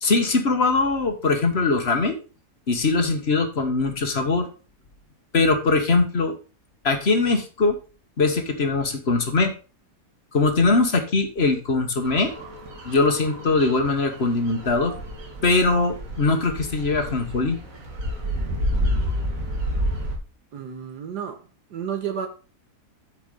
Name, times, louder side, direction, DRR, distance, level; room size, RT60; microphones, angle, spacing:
voice 1, 0.0-2.2 2.7-4.5 5.3-6.4 6.8-7.8 8.2-9.5 10.3-12.3 12.8-14.9 15.4-17.6, left 3 dB, 40° left, 6 dB, 1.5 m, -21 dB
sound 1, 12.0-20.2, equal, 55° right, 2.1 m, -30 dB
voice 2, 20.5-21.4 21.7-22.3, right 8 dB, 80° right, 6 dB, 1.7 m, -31 dB
8.7 x 4.7 x 5.2 m, 0.35 s
omnidirectional pair, 1.7 m